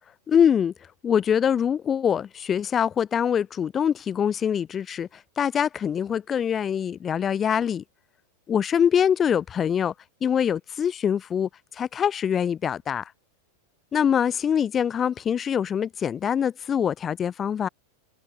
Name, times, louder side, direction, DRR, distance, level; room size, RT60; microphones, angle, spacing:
voice 1, 0.3-0.7 1.0-7.8 8.5-9.9 10.2-13.1 13.9-17.7, left 8 dB, 25° left, 1.3 m, -24 dB
figure-of-eight pair, 90°, 0 cm